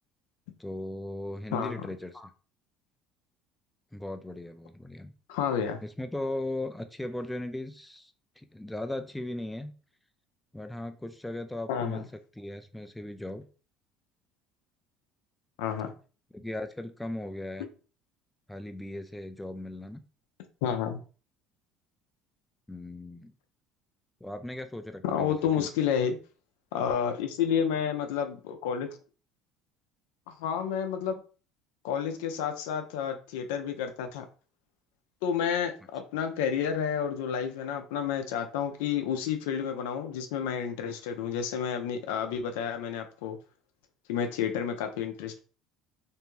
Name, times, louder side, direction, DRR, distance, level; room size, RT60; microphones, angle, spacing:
voice 1, 0.6-2.3 3.9-5.1 5.8-9.7 10.5-12.1 12.4-13.5 16.3-17.7 18.5-20.0 22.7-23.3 24.2-25.7, left 1 dB, 5° left, 7 dB, 0.3 m, -37 dB
voice 2, 1.5-1.8 5.3-5.8 11.7-12.0 15.6-15.9 20.6-21.0 25.0-26.2 26.7-28.9 30.3-31.2 31.8-34.2 35.2-43.4 44.1-45.4, left 8 dB, 85° left, 6 dB, 0.4 m, -30 dB
2.6 x 2.2 x 3.0 m, 0.37 s
supercardioid pair, 85°, 0 cm